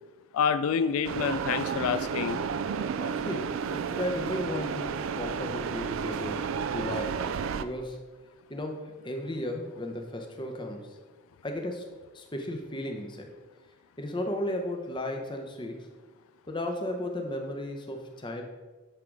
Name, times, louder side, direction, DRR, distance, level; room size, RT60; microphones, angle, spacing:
voice 1, 0.3-2.4, left 7 dB, 80° left, 13 dB, 0.3 m, -27 dB
sound 1, 1.0-7.6, right 6 dB, 70° right, 0.4 m, -32 dB
voice 2, 2.7-7.2 7.6-8.0 8.5-10.9 11.4-11.9 12.1-13.3 14.0-15.9 16.5-18.4, left 1 dB, 20° left, 3 dB, 0.8 m, -35 dB
9.9 x 3.8 x 4.6 m, 1.3 s
head